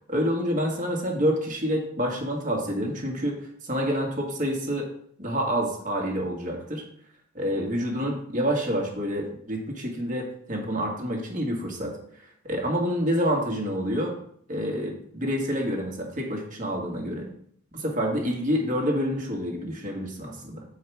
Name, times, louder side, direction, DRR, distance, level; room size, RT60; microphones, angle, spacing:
voice 1, 0.1-4.9 5.2-6.8 7.3-11.9 12.4-14.1 14.5-17.3 17.7-20.6, equal, 40° right, 0 dB, 1.8 m, -28 dB
8.6 x 4.9 x 4.7 m, 0.64 s
head